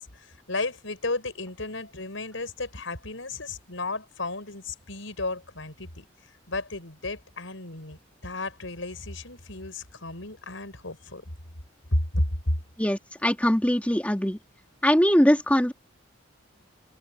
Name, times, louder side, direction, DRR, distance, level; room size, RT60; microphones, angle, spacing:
voice 1, 0.0-6.0 6.5-11.2 11.9-12.5, left 2 dB, 85° left, 5.2 m, -33 dB
voice 2, 12.8-14.4 14.8-15.7, equal, 5° left, 2.1 m, -22 dB
head